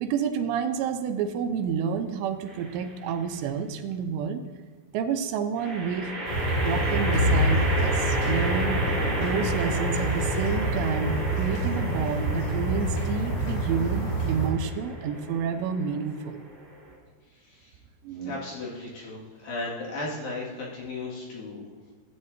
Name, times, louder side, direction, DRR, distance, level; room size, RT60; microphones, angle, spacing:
voice 1, 0.0-4.4 4.9-8.8 9.2-16.4 18.0-18.4, right 7 dB, 85° right, 7 dB, 2.9 m, -29 dB
sound 1, 2.5-3.0 5.6-16.9, right 1 dB, 25° right, 2.4 m, -33 dB
sound 2, 6.3-14.5, right 1 dB, 80° left, 4.8 m, -28 dB
sound 3, 7.1-10.2, left 2 dB, 25° left, 2.0 m, -28 dB
voice 2, 17.3-17.8 18.2-21.6, left 2 dB, 60° left, -5 dB, 3.5 m, -36 dB
15.0 x 8.5 x 2.7 m, 1.5 s
omnidirectional pair, 5.0 m